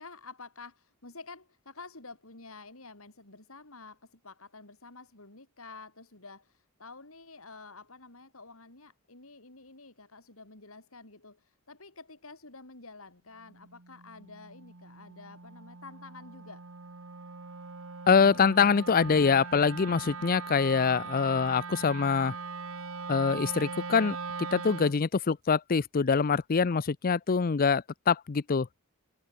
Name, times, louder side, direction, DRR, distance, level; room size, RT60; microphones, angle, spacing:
voice 1, 0.0-16.6, left 3 dB, 75° left, 4.8 m, -49 dB
Wind instrument woodwind instrument, 13.4-25.0, right 4 dB, 70° right, 1.5 m, -41 dB
voice 2, 18.1-22.3 23.1-28.7, left 5 dB, 40° left, 0.5 m, -25 dB
head